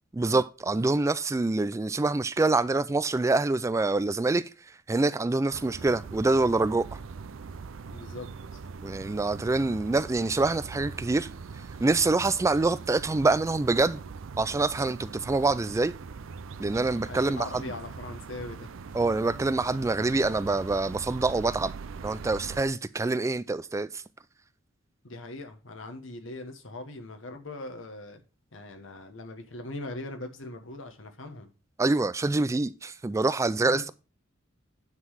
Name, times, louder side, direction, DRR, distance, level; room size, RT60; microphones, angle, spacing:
voice 1, 0.1-4.5 4.9-7.0 8.8-11.3 11.8-14.0 14.4-15.9 16.6-17.6 18.9-21.7 22.0-24.0 31.8-33.9, right 3 dB, 15° right, 0.3 m, -26 dB
sound 1, 5.5-22.6, right 5 dB, 85° right, 0.5 m, -42 dB
voice 2, 7.9-8.6 17.0-18.7 25.0-28.2 28.5-31.5 33.6-33.9, left 2 dB, 70° left, 1.4 m, -41 dB
9.6 x 3.9 x 6.1 m
head